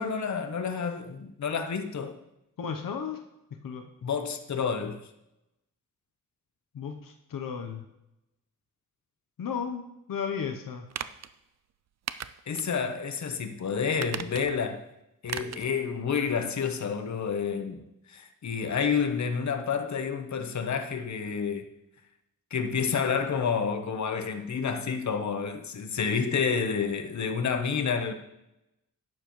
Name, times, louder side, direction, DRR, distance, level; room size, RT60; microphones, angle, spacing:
voice 1, 0.0-2.2 4.0-5.0 12.5-14.8 15.2-21.7 22.5-28.1, left 6 dB, 55° left, 1.0 m, -29 dB
voice 2, 2.6-3.2 3.5-3.9 6.7-7.9 9.4-10.9 12.8-12.9, left 6 dB, 80° left, 0.9 m, -34 dB
sound 1, 10.9-11.3 12.1-12.7 13.1-13.2 13.9-14.7 15.3-15.7 16.0-16.1, right 9 dB, 55° right, 0.5 m, -37 dB
12.0 x 9.2 x 3.1 m
wide cardioid pair, 110°, 33 cm